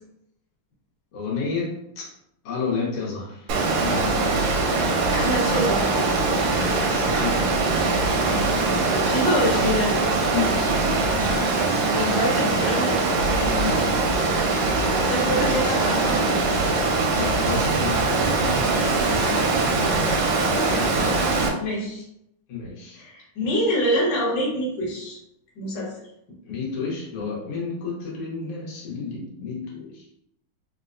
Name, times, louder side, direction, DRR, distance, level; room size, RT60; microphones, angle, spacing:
voice 1, 1.1-2.1 2.4-3.5 3.8-4.4 6.5-7.7 10.3-11.5 13.5-14.0 17.2-18.1 19.0-19.6 19.8-20.3 22.5-23.0 26.5-30.1, left 5 dB, 80° left, -4 dB, 1.9 m, -31 dB
Water, 3.5-21.5, right 3 dB, 85° right, 1.5 m, -22 dB
voice 2, 5.1-6.1 9.0-9.9 11.9-13.0 15.0-16.4 19.7-20.0 20.5-20.8 21.3-22.0 23.0-25.2 25.6-25.9, equal, 60° left, -4 dB, 1.6 m, -26 dB
4.3 x 2.0 x 2.5 m, 0.78 s
omnidirectional pair, 2.4 m